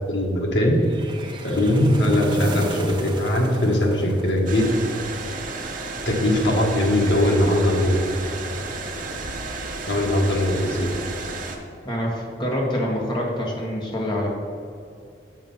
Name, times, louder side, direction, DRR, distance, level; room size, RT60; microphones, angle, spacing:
voice 1, 0.1-0.8 1.4-4.6 6.0-8.0 9.9-10.9, left 1 dB, 80° left, -1 dB, 1.5 m, -20 dB
sound 1, 0.8-5.0, right 1 dB, 25° right, 0.7 m, -33 dB
sound 2, 4.5-11.6, right 3 dB, 50° right, 1.0 m, -32 dB
voice 2, 11.8-14.3, equal, 25° left, -2 dB, 1.6 m, -26 dB
7.3 x 5.5 x 5.5 m, 2.5 s
head